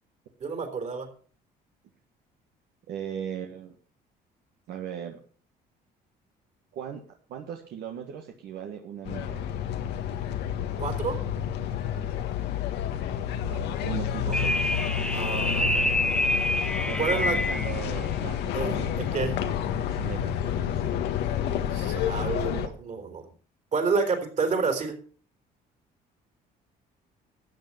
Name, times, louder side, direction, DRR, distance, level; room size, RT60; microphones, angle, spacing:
voice 1, 0.4-1.1 10.8-11.2 14.3-14.4 15.1-15.7 17.0-17.4 18.5-19.4 21.6-23.3 23.7-24.9, right 5 dB, 45° right, 5 dB, 3.9 m, -29 dB
voice 2, 2.9-3.7 4.7-5.2 6.7-7.0 7.3-9.4 13.4-14.8 16.9-20.9, right 8 dB, 75° right, 2 dB, 1.7 m, -38 dB
sound 1, 9.1-22.7, left 9 dB, 80° left, 1.4 m, -29 dB
sound 2, 14.3-17.8, left 1 dB, 5° left, 0.9 m, -27 dB
13.5 x 8.2 x 6.0 m, 0.42 s
cardioid pair, 110°, 17 cm